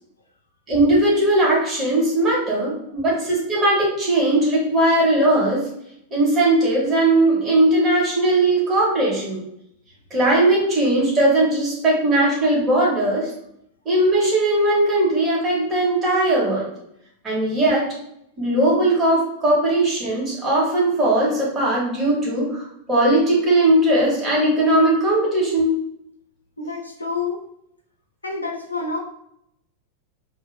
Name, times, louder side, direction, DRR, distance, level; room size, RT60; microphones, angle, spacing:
voice 1, 0.7-5.7 6.1-9.4 10.1-13.3 13.8-16.7 17.2-17.9 18.4-25.8, right 1 dB, 25° right, -6 dB, 1.1 m, -19 dB
voice 2, 26.6-27.5 28.2-29.0, left 4 dB, 80° left, 2 dB, 0.5 m, -28 dB
2.3 x 2.2 x 3.1 m, 0.75 s
figure-of-eight pair, 90°, 0 cm